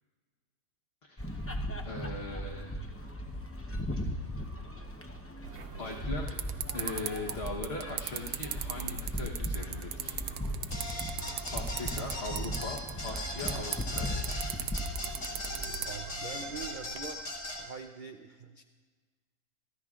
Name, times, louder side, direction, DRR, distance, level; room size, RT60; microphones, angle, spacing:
voice 1, 1.0-2.8 4.0-4.3 5.8-6.3 6.7-10.2 11.5-14.3, left 2 dB, 45° left, -1 dB, 1.4 m, -40 dB
sound 1, 1.2-15.8, equal, 15° left, 0.6 m, -38 dB
sound 2, 5.4-17.0, right 9 dB, 80° right, 1.2 m, -40 dB
sound 3, 10.7-17.6, left 1 dB, 65° left, 2.6 m, -39 dB
voice 2, 15.7-17.2 17.6-18.6, right 5 dB, 50° right, 4 dB, 0.5 m, -44 dB
25.0 x 14.5 x 2.5 m, 1.5 s
omnidirectional pair, 1.6 m